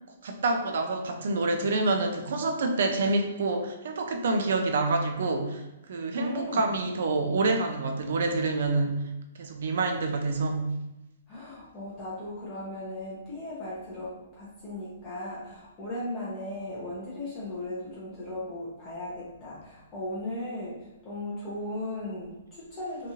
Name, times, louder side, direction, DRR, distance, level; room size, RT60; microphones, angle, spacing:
voice 1, 0.2-9.1 9.4-10.8, right 3 dB, 60° right, 4 dB, 0.4 m, -27 dB
voice 2, 6.2-6.7 11.3-20.8 21.0-23.1, left 1 dB, 20° left, -9 dB, 0.6 m, -37 dB
2.9 x 2.4 x 2.7 m, 0.95 s
hypercardioid pair, 165°, 0 cm